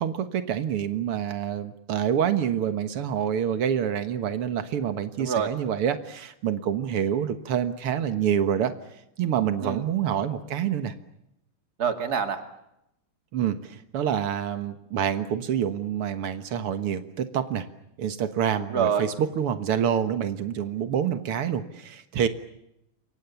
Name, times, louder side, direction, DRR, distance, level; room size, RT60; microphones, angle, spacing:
voice 1, 0.0-8.8 9.2-10.9 13.3-17.7 18.0-19.1 19.4-22.3, right 9 dB, 90° right, 10 dB, 2.4 m, -27 dB
voice 2, 5.2-5.5 9.6-9.9 11.8-12.5 18.6-19.1, right 7 dB, 45° right, 8 dB, 2.8 m, -26 dB
29.0 x 24.5 x 7.1 m, 0.82 s
omnidirectional pair, 2.4 m